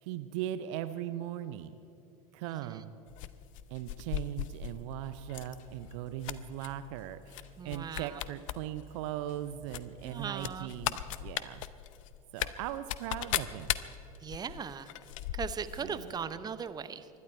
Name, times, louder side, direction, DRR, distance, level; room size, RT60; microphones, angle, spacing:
voice 1, 0.0-1.7 2.3-2.9 3.7-11.6 12.3-13.8 15.8-16.0, right 12 dB, 55° right, 12 dB, 0.7 m, -39 dB
voice 2, 2.4-2.8 7.6-8.2 10.0-10.7 14.2-14.9 15.3-17.1, right 7 dB, 20° right, 13 dB, 0.8 m, -39 dB
sound 1, 3.1-11.2, left 2 dB, 45° left, 2.2 m, -57 dB
sound 2, 3.2-4.8 5.3-5.6 5.9-6.7 7.3-7.4 7.7-8.6 8.9-9.0 9.7-16.1, left 14 dB, 60° left, 0.7 m, -36 dB
25.0 x 11.5 x 4.5 m, 2.7 s
figure-of-eight pair, 80°, 19 cm